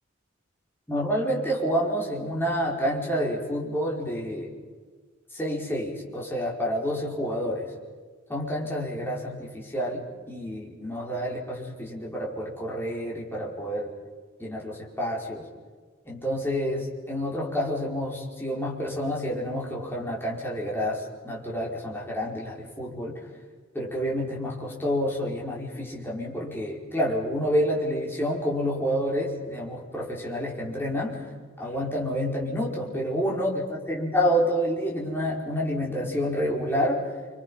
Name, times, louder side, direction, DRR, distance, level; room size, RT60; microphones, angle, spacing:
voice 1, 0.9-4.5 5.3-7.7 8.3-13.9 14.4-15.5 16.1-23.3 23.7-31.2 31.6-37.0, equal, 10° left, -4 dB, 5.2 m, -28 dB
29.5 x 26.5 x 5.8 m, 1.5 s
head